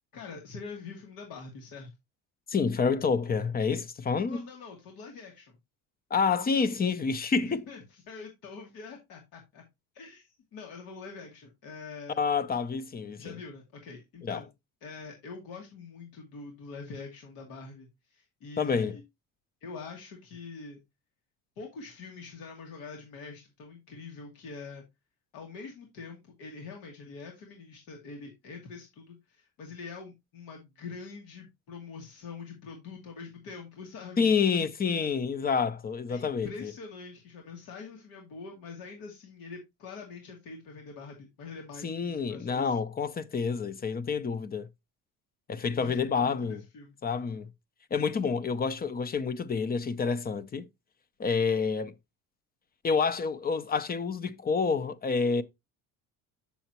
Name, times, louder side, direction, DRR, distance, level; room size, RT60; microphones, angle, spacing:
voice 1, 0.1-1.9 4.3-5.6 7.4-9.6 9.9-12.2 13.2-14.5 14.8-19.0 19.6-20.8 21.6-24.8 25.3-34.3 36.1-42.7 45.6-46.9, left 4 dB, 80° left, 2.4 m, -45 dB
voice 2, 2.5-4.4 6.1-7.7 12.2-13.3 14.2-14.4 18.6-19.0 34.2-36.7 41.8-44.7 45.5-46.6 47.0-47.5 47.9-50.7 51.2-51.9 52.8-55.4, left 5 dB, 25° left, 0.7 m, -28 dB
7.9 x 7.0 x 2.9 m
cardioid pair, 115°, 34 cm